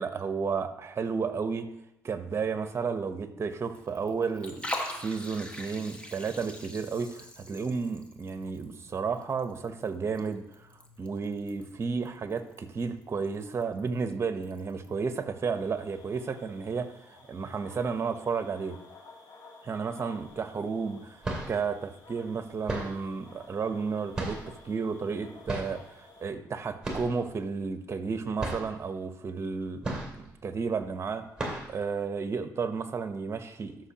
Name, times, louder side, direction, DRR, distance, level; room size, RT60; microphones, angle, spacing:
voice 1, 0.0-1.7 2.0-4.7 5.0-18.8 19.6-31.2 31.7-33.8, right 5 dB, 40° right, 9 dB, 0.8 m, -32 dB
Liquid, 3.5-14.9, left 1 dB, 15° left, 1.2 m, -44 dB
sound 1, 15.4-26.3, left 3 dB, 70° left, 2.2 m, -54 dB
sound 2, 20.3-20.4 21.0-21.7 22.7-23.1 24.1-24.7 25.5-25.8 26.8-27.3 27.5-27.6 28.0-28.1 28.4-28.8 29.8-30.4 30.8-30.9 31.4-31.8, right 2 dB, 10° right, 2.2 m, -34 dB
13.0 x 6.0 x 2.9 m, 0.84 s
cardioid pair, 95°, 7 cm